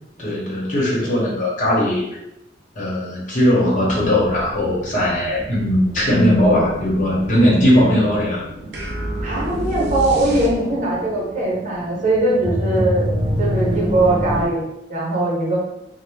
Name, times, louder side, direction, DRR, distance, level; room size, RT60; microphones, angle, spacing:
voice 1, 0.2-2.1 2.8-8.4, left 1 dB, 45° left, -5 dB, 1.0 m, -18 dB
sound 1, 3.8-14.4, equal, 25° right, 0.4 m, -28 dB
sound 2, 8.7-11.0, right 1 dB, 65° right, 0.6 m, -28 dB
voice 2, 9.2-13.1 13.4-15.6, right 2 dB, 45° right, -4 dB, 0.9 m, -20 dB
2.6 x 2.1 x 3.1 m, 0.84 s
head